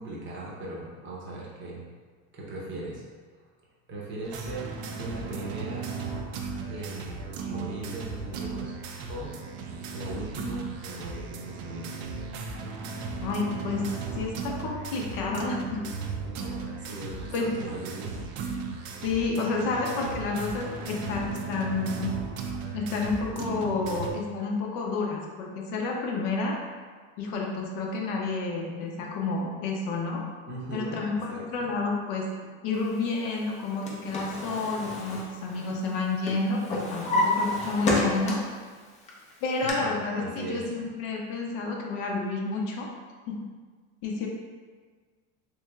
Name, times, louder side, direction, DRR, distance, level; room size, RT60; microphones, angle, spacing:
voice 1, 0.0-1.8 2.3-3.0 3.9-4.7 5.0-5.9 6.7-8.7 9.1-9.3 9.9-12.1 16.4-18.3 30.5-31.7 39.6-39.9 40.2-40.6, right 2 dB, 30° right, -4 dB, 0.7 m, -38 dB
sound 1, 4.2-24.1, right 4 dB, 70° right, 0.5 m, -36 dB
voice 2, 13.2-13.8 14.1-15.8 17.3-17.5 19.0-22.1 22.7-26.5 27.2-30.2 30.7-32.3 32.6-38.4 39.4-42.9 43.3-43.4 44.0-44.3, left 3 dB, 60° left, -1 dB, 0.7 m, -30 dB
Drawer open or close, 33.5-36.0 36.3-38.6 39.0-39.7, left 1 dB, 20° left, 0.5 m, -30 dB
3.1 x 3.0 x 2.3 m, 1.5 s
supercardioid pair, 130°, 37 cm